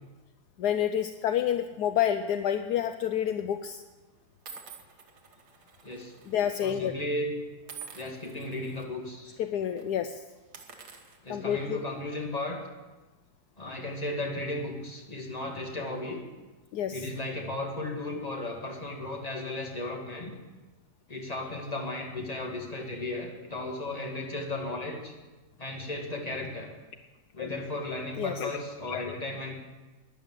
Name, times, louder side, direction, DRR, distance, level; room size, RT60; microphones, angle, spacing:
voice 1, 0.6-3.8 6.3-6.9 9.4-10.2 11.3-11.8 16.7-17.0 27.4-27.5 28.2-28.6 28.9-29.1, left 10 dB, 75° left, 9 dB, 1.2 m, -29 dB
sound 1, 2.8-3.1 3.8-3.9 4.5-6.4 6.7-6.9 7.7-8.8 9.3-9.4 9.7-9.9 10.4-12.0, right 6 dB, 70° right, 1.9 m, -48 dB
voice 2, 5.8-6.3 6.6-7.3 7.9-9.4 11.2-12.6 13.6-16.2 16.9-20.3 21.1-25.1 25.6-26.7 27.3-29.5, left 2 dB, 20° left, 0 dB, 2.2 m, -35 dB
12.5 x 10.5 x 7.6 m, 1.2 s
omnidirectional pair, 1.8 m